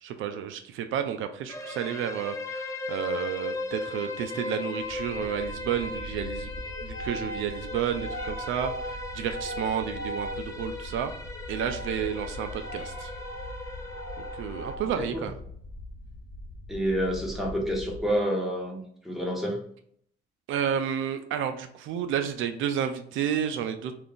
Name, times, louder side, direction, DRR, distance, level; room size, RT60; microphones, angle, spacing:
voice 1, 0.0-6.5 6.8-11.1 11.5-13.1 14.4-15.3 20.5-23.9, right 8 dB, 80° right, 8 dB, 0.4 m, -31 dB
sound 1, 1.5-14.8, left 2 dB, 15° left, 0.6 m, -37 dB
sound 2, 4.8-18.2, equal, 55° left, 1.2 m, -39 dB
voice 2, 15.0-15.3 16.7-19.6, equal, ahead, -2 dB, 1.0 m, -29 dB
2.5 x 2.4 x 3.6 m, 0.64 s
cardioid pair, 90°, 20 cm